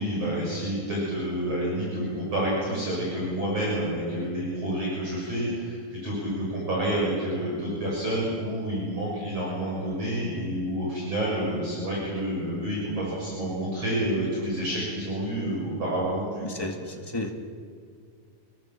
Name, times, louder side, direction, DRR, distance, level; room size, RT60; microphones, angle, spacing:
voice 1, 0.0-16.7, right 1 dB, 40° right, -5 dB, 8.1 m, -29 dB
voice 2, 16.4-17.3, left 2 dB, 15° left, 2 dB, 0.9 m, -33 dB
29.0 x 22.0 x 7.6 m, 2.3 s
omnidirectional pair, 4.2 m